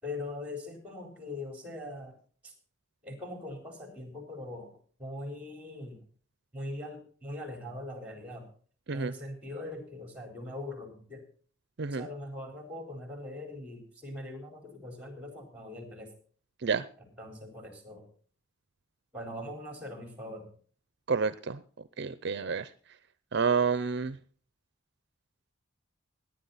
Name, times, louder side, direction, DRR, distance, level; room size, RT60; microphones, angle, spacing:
voice 1, 0.0-2.2 2.4-2.5 3.0-6.0 6.5-8.5 8.9-11.2 11.9-16.1 17.0-18.1 19.1-20.5, left 1 dB, 5° right, 4 dB, 4.2 m, -41 dB
voice 2, 21.1-21.6 22.0-22.7 23.3-24.1, right 5 dB, 55° right, 14 dB, 0.6 m, -29 dB
18.0 x 10.0 x 4.1 m, 0.43 s
head